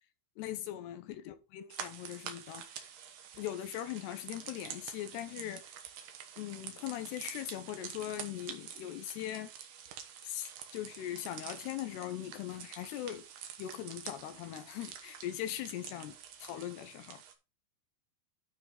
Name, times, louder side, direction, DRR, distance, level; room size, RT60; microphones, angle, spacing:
voice 1, 0.4-2.7 3.4-5.6 6.4-9.5 10.2-13.2 13.6-16.2 16.4-17.2, left 12 dB, 75° left, 2.5 m, -40 dB
sound 1, 1.7-17.3, right 8 dB, 80° right, 1.9 m, -48 dB
12.0 x 4.7 x 3.9 m
omnidirectional pair, 5.6 m